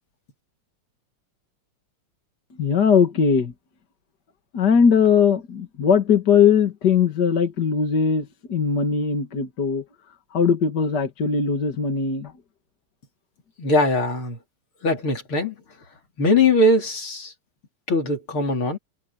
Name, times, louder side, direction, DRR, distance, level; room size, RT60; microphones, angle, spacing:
voice 1, 2.6-3.5 4.5-9.8 10.3-12.3, left 6 dB, 55° left, 2.4 m, -20 dB
voice 2, 13.6-14.4 14.8-15.6 16.2-17.3 17.9-18.8, left 2 dB, 85° left, 4.5 m, -21 dB
omnidirectional pair, 2.3 m